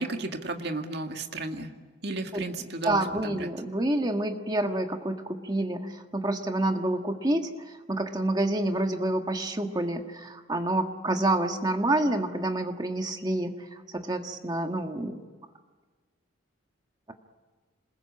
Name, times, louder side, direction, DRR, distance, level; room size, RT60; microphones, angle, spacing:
voice 1, 0.0-1.7 2.0-3.5, right 2 dB, 55° right, 4 dB, 2.0 m, -34 dB
voice 2, 2.8-15.2, right 1 dB, 20° right, 5 dB, 1.5 m, -28 dB
27.5 x 21.0 x 8.8 m, 1.4 s
head